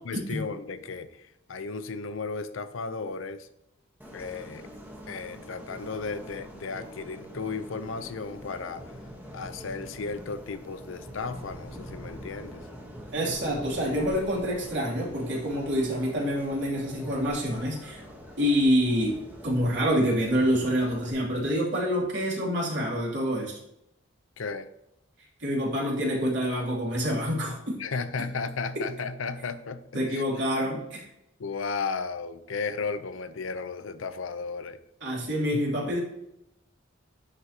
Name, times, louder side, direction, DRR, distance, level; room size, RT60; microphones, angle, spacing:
voice 1, 0.0-3.5 4.1-4.7 5.1-8.8 9.3-12.7 24.4-24.7 27.8-30.5 31.4-34.8 35.5-35.6, left 4 dB, 75° left, 12 dB, 0.6 m, -34 dB
sound 1, 4.0-21.1, equal, 10° right, 1.1 m, -44 dB
voice 2, 13.1-18.0 18.4-19.2 19.4-23.6 25.4-27.7 29.9-31.0 35.0-36.0, equal, 60° right, -4 dB, 2.8 m, -27 dB
10.5 x 4.9 x 2.8 m, 0.82 s
head